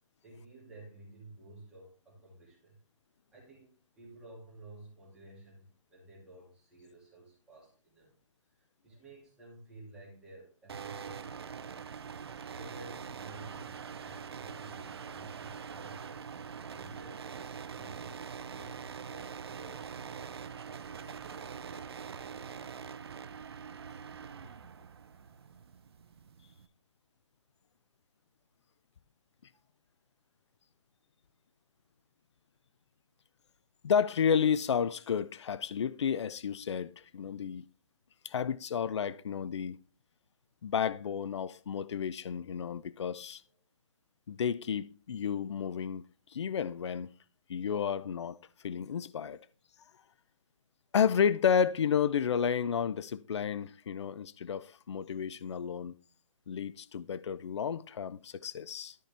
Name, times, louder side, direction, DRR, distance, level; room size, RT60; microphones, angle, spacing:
voice 1, 0.2-2.8 3.3-8.1 8.5-11.7 12.5-17.4 17.7-23.0, right 2 dB, 5° right, 2.2 m, -53 dB
sound 1, 10.7-26.7, right 6 dB, 50° right, 0.6 m, -44 dB
voice 2, 33.8-37.6 38.2-39.8 40.6-43.4 44.3-46.0 46.3-47.1 47.5-48.4 48.6-49.4 50.9-56.0 56.5-59.0, left 7 dB, 60° left, 0.4 m, -31 dB
13.0 x 4.3 x 3.4 m
hypercardioid pair, 170°, 17 cm